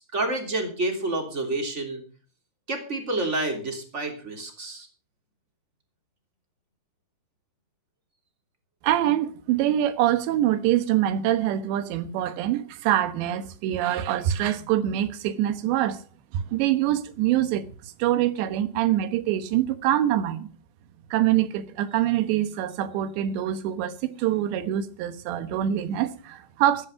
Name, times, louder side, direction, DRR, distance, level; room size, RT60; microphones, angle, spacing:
voice 1, 0.0-2.0 2.7-4.9, right 2 dB, 20° right, 2.7 m, -29 dB
voice 2, 8.8-16.0 16.3-17.7 18.0-20.5 21.1-26.9, right 12 dB, 80° right, 3.4 m, -24 dB
15.5 x 10.5 x 5.8 m
omnidirectional pair, 5.1 m